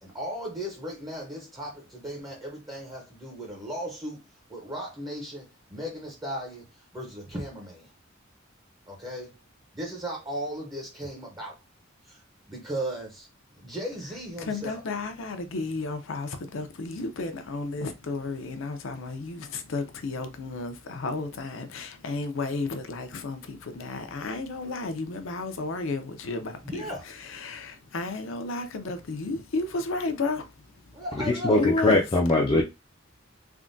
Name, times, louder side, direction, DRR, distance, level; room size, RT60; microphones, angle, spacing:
voice 1, 0.0-4.2 4.5-7.9 8.9-9.4 9.7-11.6 12.0-13.3 13.6-14.8 26.6-27.1 30.9-31.6, equal, 20° right, 0.6 m, -36 dB
voice 2, 14.4-26.9 27.2-30.5 30.8-30.9 31.5-32.0, left 3 dB, 75° left, 0.5 m, -32 dB
voice 3, 31.2-32.6, left 2 dB, 25° left, 0.4 m, -21 dB
3.4 x 2.2 x 2.5 m
head